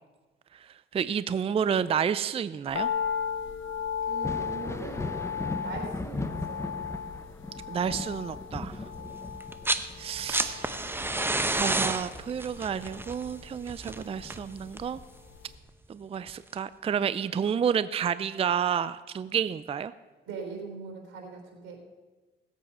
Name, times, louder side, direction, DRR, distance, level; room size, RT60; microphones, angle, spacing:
voice 1, 0.6-2.9 7.7-8.8 10.0-10.7 11.5-15.0 15.9-19.9, right 8 dB, 30° right, 15 dB, 0.4 m, -30 dB
sound 1, 2.7-15.0 15.3-15.4, left 7 dB, 80° left, 1.2 m, -36 dB
voice 2, 4.0-5.1 5.6-6.7 9.0-9.1 20.3-21.8, right 5 dB, 90° right, 2 dB, 3.8 m, -41 dB
Thunder, 4.1-13.4 13.8-15.0 16.6-16.7 17.5-17.6, left 2 dB, 15° left, 0.9 m, -38 dB
sound 2, 9.4-9.9 10.1-15.0 16.3-16.4, right 2 dB, 10° right, 0.8 m, -30 dB
18.0 x 8.3 x 5.5 m, 1.3 s
cardioid pair, 90°, 20 cm